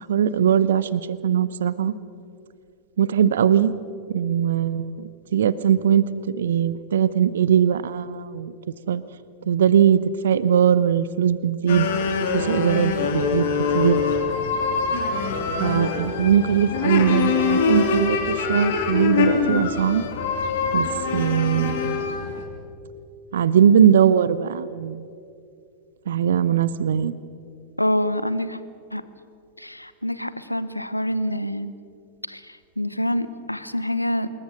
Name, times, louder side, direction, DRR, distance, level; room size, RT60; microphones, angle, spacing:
voice 1, 0.0-1.9 3.0-3.7 4.1-8.5 8.9-9.0 9.5-11.9 12.3-13.4 13.7-14.0 15.6-20.0 20.7-20.9 21.1-22.1 23.3-25.0 26.1-27.2, right 9 dB, 65° right, 17 dB, 0.7 m, -20 dB
sound 1, 11.7-22.4, left 5 dB, 55° left, 3.2 m, -24 dB
voice 2, 27.8-28.6 28.9-29.0 29.6-31.7 32.3-34.3, left 1 dB, 85° left, 14 dB, 1.0 m, -26 dB
27.0 x 21.0 x 6.3 m, 2.4 s
figure-of-eight pair, 90°, 0 cm